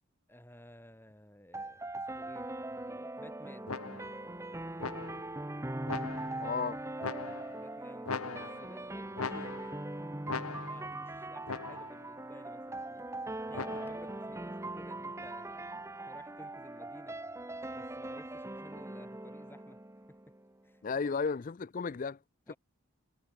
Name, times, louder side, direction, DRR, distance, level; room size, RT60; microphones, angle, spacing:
voice 1, 0.3-3.7 7.5-9.8 10.7-13.1 13.5-15.6 16.0-17.2 17.7-19.8 20.1-20.2 20.6-21.1 22.5-22.6, equal, 10° left, 5.1 m, -55 dB
sound 1, 1.5-20.5, right 2 dB, 15° right, 0.9 m, -41 dB
sound 2, 3.7-4.3 4.8-5.4 5.9-6.5 7.0-7.7 8.0-8.8 9.2-9.9 10.3-11.0 11.5-12.1 13.5-14.1, left 4 dB, 85° left, 1.2 m, -40 dB
voice 2, 6.4-6.8 20.8-22.2 22.5-22.6, left 5 dB, 40° left, 0.4 m, -33 dB
head